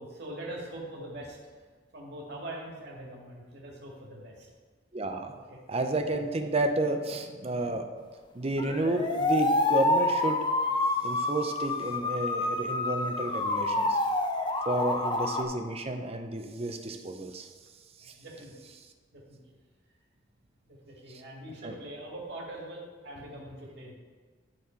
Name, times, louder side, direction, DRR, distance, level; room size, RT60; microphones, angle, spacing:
voice 1, 0.0-1.7 1.9-4.5 5.3-5.6 18.0-18.6 19.1-19.4 20.6-24.0, right 1 dB, 60° right, -3 dB, 2.1 m, -43 dB
voice 2, 4.9-5.3 5.7-7.9 8.3-10.4 11.0-14.0 14.7-17.5 18.0-18.1 21.6-21.7, right 2 dB, 35° right, 5 dB, 0.7 m, -31 dB
Police siren remix, 8.6-15.4, left 2 dB, 25° left, 0.6 m, -28 dB
11.5 x 4.3 x 4.5 m, 1.5 s
head